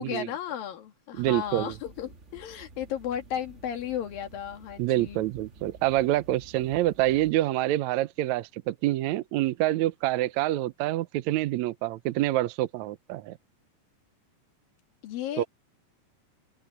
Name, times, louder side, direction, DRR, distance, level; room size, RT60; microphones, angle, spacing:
voice 1, 0.0-5.2 15.0-15.5, left 9 dB, 80° left, 3.8 m, -34 dB
sound 1, 1.1-7.3, right 3 dB, 35° right, 1.1 m, -51 dB
voice 2, 1.2-1.7 4.8-13.4 15.4-15.5, right 15 dB, 75° right, 1.7 m, -27 dB
open air
omnidirectional pair, 4.0 m